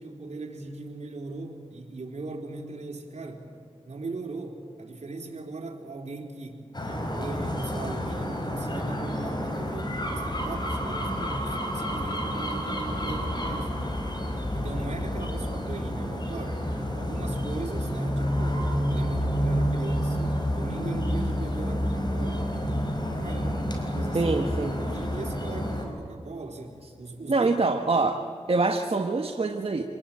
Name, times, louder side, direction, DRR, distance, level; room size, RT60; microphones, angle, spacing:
voice 1, 0.0-3.5 3.8-6.6 7.1-13.8 14.5-16.6 16.9-24.3 24.6-27.6, right 3 dB, 75° right, 1 dB, 4.3 m, -39 dB
sound 1, 6.7-25.9, equal, 40° left, 5.4 m, -29 dB
voice 2, 24.1-24.7 27.3-29.8, right 3 dB, 55° right, 3 dB, 1.6 m, -25 dB
27.5 x 20.0 x 8.8 m, 2.4 s
wide cardioid pair, 55°, 12 cm